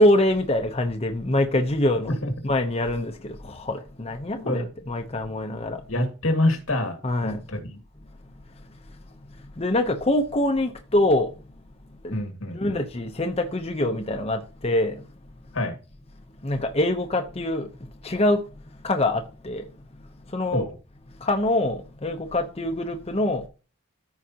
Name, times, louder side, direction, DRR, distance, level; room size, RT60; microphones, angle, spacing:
voice 1, 0.0-2.1 2.4-5.8 7.0-7.4 9.6-11.3 12.0-12.2 12.5-15.0 16.4-17.7 18.0-18.4 18.8-19.6 20.3-20.6 21.2-23.4, left 1 dB, 30° left, 0.8 m, -24 dB
voice 2, 4.3-4.7 5.9-7.0 7.2-7.8 12.1-12.8 15.5-15.8 20.5-20.7, left 1 dB, 90° left, 2.1 m, -26 dB
14.0 x 4.9 x 2.9 m
head